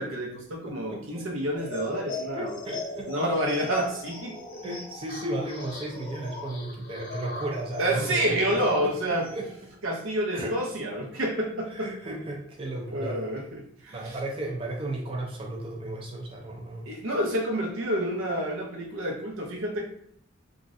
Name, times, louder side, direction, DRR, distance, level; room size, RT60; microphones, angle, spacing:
voice 1, 0.0-2.6 3.1-4.3 7.8-9.3 9.8-11.9 12.9-14.2 16.9-19.8, right 1 dB, 90° right, 0 dB, 0.7 m, -28 dB
voice 2, 0.7-1.3 2.3-3.1 4.6-9.5 10.3-10.6 11.7-13.2 13.9-16.9, right 1 dB, 25° right, -1 dB, 0.4 m, -34 dB
sound 1, 1.6-9.6, left 2 dB, 45° left, 0.8 m, -40 dB
3.1 x 2.4 x 2.5 m, 0.68 s
head